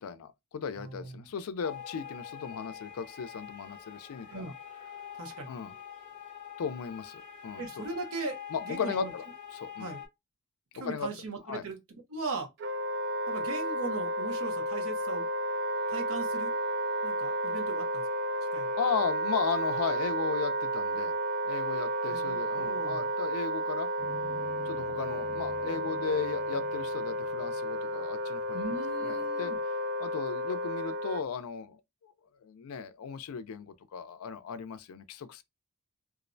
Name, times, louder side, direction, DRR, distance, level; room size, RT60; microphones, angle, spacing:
voice 1, 0.0-4.5 5.5-5.8 6.6-7.9 8.5-9.2 9.5-9.9 10.8-11.1 11.5-11.6 18.8-21.2 21.4-23.9 24.7-28.6 29.0-29.5 30.0-32.1 32.4-35.4, left 6 dB, 80° left, 0.4 m, -36 dB
voice 2, 0.8-1.3 4.3-4.5 5.2-5.5 7.6-9.1 9.8-10.0 10.7-11.8 12.1-12.5 13.3-15.2 15.9-16.5 17.0-18.0 18.5-18.7 22.0-23.1 28.5-29.6, right 3 dB, 80° right, 0.8 m, -39 dB
sound 1, 1.6-10.1, left 8 dB, 35° left, 0.8 m, -45 dB
Wind instrument woodwind instrument, 12.6-31.2, right 1 dB, 50° right, 0.4 m, -32 dB
sound 2, 24.0-28.5, right 1 dB, 30° right, 1.0 m, -49 dB
2.5 x 2.0 x 2.5 m
head